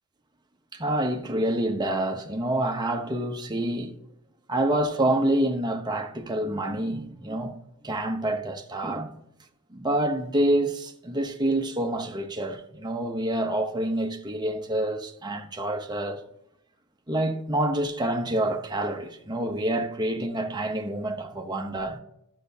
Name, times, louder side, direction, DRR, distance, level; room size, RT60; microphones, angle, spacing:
voice 1, 0.7-3.9 4.5-7.6 7.8-9.1 9.7-16.2 17.1-22.0, right 1 dB, 20° right, 0.8 m, -27 dB
12.5 x 6.5 x 2.7 m
head